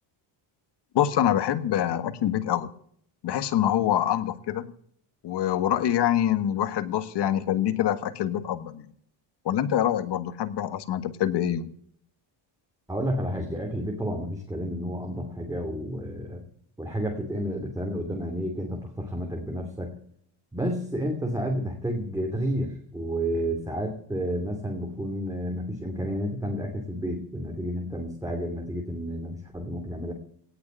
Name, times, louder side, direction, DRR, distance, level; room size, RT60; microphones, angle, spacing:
voice 1, 0.9-2.7 3.2-4.7 5.2-8.8 9.4-11.7, left 11 dB, 55° left, 11 dB, 1.5 m, -25 dB
voice 2, 12.9-16.4 16.8-20.0 20.5-30.1, equal, 5° right, 2 dB, 2.8 m, -31 dB
18.0 x 6.7 x 8.9 m, 0.64 s
cardioid pair, 130°, 49 cm